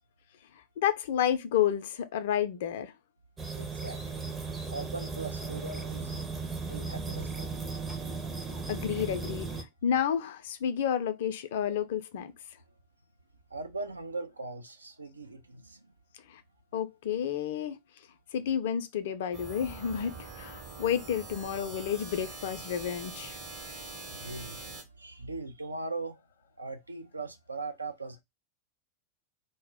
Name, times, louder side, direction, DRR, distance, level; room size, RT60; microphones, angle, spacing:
voice 1, 0.8-2.9 8.7-9.5 9.8-12.3 16.3-16.4 16.7-17.8 18.3-23.4, left 9 dB, 55° left, 0.4 m, -30 dB
sound 1, 3.4-9.6, right 4 dB, 15° right, 0.5 m, -36 dB
voice 2, 3.6-6.2 6.7-7.8 13.5-15.9 23.6-24.6 24.9-26.2 26.6-28.2, right 3 dB, 80° right, 0.4 m, -40 dB
sound 2, 19.3-24.8, right 3 dB, 45° right, 0.9 m, -44 dB
2.1 x 2.0 x 3.3 m
figure-of-eight pair, 90°, 0 cm